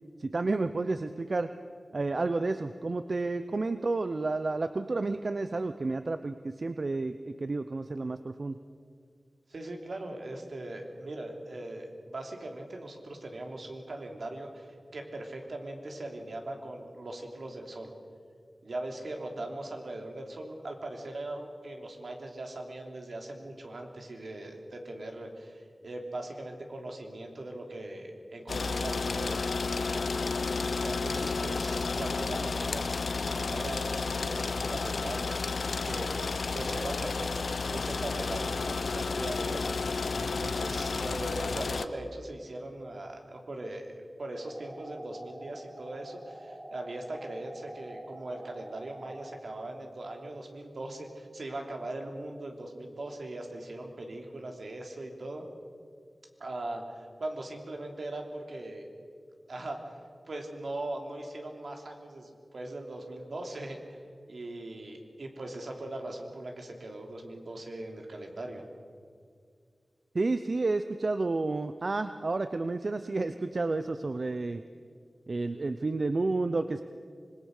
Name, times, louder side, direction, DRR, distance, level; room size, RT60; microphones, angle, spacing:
voice 1, 0.2-1.5 1.9-8.6 70.1-74.6 75.3-76.8, right 3 dB, 55° right, 10 dB, 0.7 m, -31 dB
voice 2, 9.5-17.9 18.6-32.9 33.2-36.1 36.5-39.7 40.2-43.9 44.2-55.4 56.4-58.9 59.5-59.9 60.3-64.0 64.3-68.6, right 2 dB, 75° right, 2 dB, 3.2 m, -40 dB
sound 1, 28.5-41.9, left 4 dB, 85° left, 0.8 m, -32 dB
sound 2, 44.4-49.4, right 1 dB, 30° right, 4.2 m, -47 dB
26.0 x 21.5 x 6.6 m, 2.1 s
wide cardioid pair, 85°, 0 cm